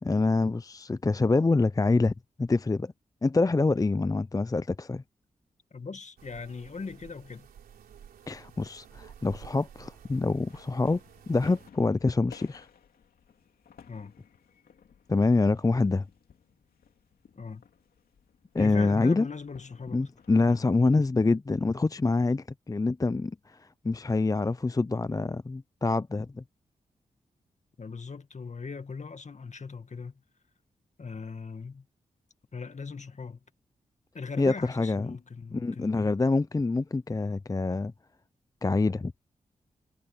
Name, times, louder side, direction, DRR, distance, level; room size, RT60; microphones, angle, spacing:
voice 1, 0.0-2.1 2.4-2.9 3.2-5.0 8.3-11.0 11.3-12.7 15.1-16.1 18.5-19.3 19.9-26.4 34.4-35.2 35.5-37.9 38.6-39.1, left 3 dB, 25° left, 0.5 m, -26 dB
voice 2, 5.7-7.5 13.9-14.1 17.4-17.7 18.6-20.1 20.4-21.0 27.8-30.2 31.0-31.9 32.5-33.4 34.1-36.2, left 5 dB, 50° left, 2.0 m, -40 dB
sound 1, 6.2-11.7, right 8 dB, 90° right, 3.4 m, -52 dB
sound 2, 10.5-20.5, left 7 dB, 80° left, 2.7 m, -56 dB
supercardioid pair, 40°, 15 cm